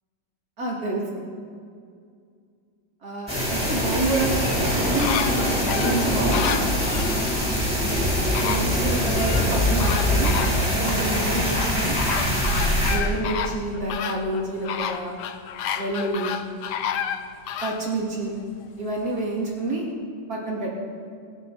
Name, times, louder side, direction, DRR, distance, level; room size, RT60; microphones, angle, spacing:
voice 1, 0.6-1.2 3.0-4.4 4.9-6.5 8.5-10.4 10.8-12.0 12.9-15.2 15.7-16.4 17.6-18.4 18.8-19.9 20.3-20.7, right 2 dB, 50° right, -3 dB, 3.2 m, -28 dB
sound 1, 3.3-12.9, equal, 5° right, 4.2 m, -23 dB
sound 2, 4.4-7.2 8.0-8.1 8.3-9.5 9.8-11.0 11.6-17.8 18.3-18.4, left 9 dB, 70° left, 1.3 m, -30 dB
25.0 x 8.3 x 4.3 m, 2.2 s
omnidirectional pair, 2.0 m